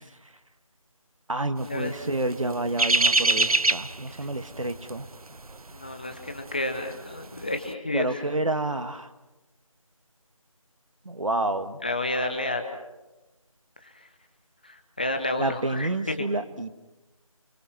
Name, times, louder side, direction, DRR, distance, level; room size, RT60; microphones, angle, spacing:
voice 1, 1.3-5.1 7.9-9.1 11.1-11.8 15.4-16.8, right 2 dB, 65° right, 8 dB, 1.9 m, -29 dB
sound 1, 1.9-6.9 7.2-7.5, right 3 dB, 80° right, 0.8 m, -24 dB
voice 2, 5.7-8.4 11.8-12.6 14.6-15.9 16.2-16.3, left 2 dB, 15° left, 6 dB, 0.9 m, -30 dB
29.5 x 23.0 x 5.9 m, 1.1 s
figure-of-eight pair, 170°, 18 cm